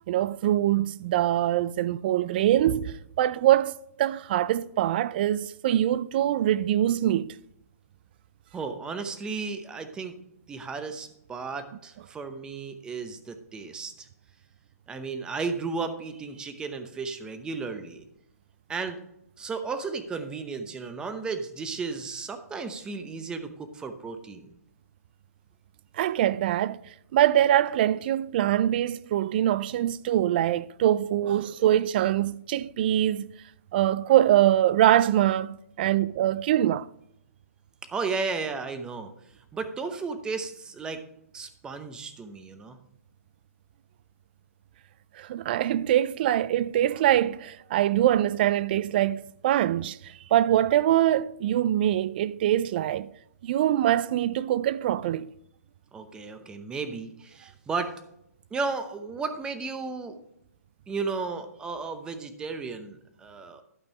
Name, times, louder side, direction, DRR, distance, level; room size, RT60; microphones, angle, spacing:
voice 1, 0.1-3.7 4.0-7.4 25.9-26.8 27.1-33.3 33.7-36.9 45.2-53.1 53.4-55.3, right 12 dB, 40° right, 0.4 m, -23 dB
voice 2, 8.5-10.2 10.5-14.1 14.9-18.1 18.7-19.0 19.4-24.5 37.9-39.1 39.5-41.0 41.3-42.8 55.9-57.9 58.5-60.2 60.9-63.6, right 4 dB, 10° right, 0.8 m, -34 dB
12.0 x 5.2 x 5.4 m
hypercardioid pair, 150°, 8 cm